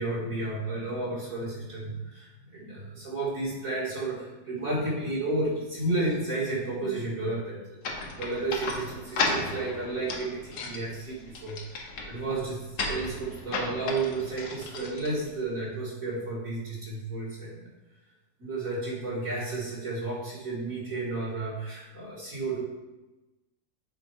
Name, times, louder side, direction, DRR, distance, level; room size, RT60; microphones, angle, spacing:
voice 1, 0.0-7.8 8.2-11.6 12.0-17.7 18.4-22.6, right 2 dB, 50° right, -8 dB, 2.0 m, -32 dB
sound 1, 7.8-15.7, left 3 dB, 75° left, 1.6 m, -34 dB
7.1 x 4.0 x 4.6 m, 1.1 s
omnidirectional pair, 1.9 m